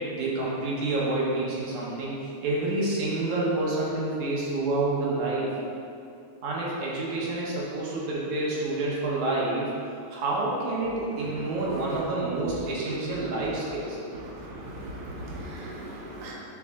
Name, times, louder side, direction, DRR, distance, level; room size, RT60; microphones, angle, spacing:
voice 1, 0.0-5.5 6.4-9.7 10.1-14.0, right 2 dB, 75° right, -5 dB, 2.8 m, -28 dB
voice 2, 14.4-16.3, right 1 dB, 55° right, -5 dB, 2.0 m, -38 dB
11.5 x 5.1 x 3.7 m, 2.5 s
omnidirectional pair, 3.4 m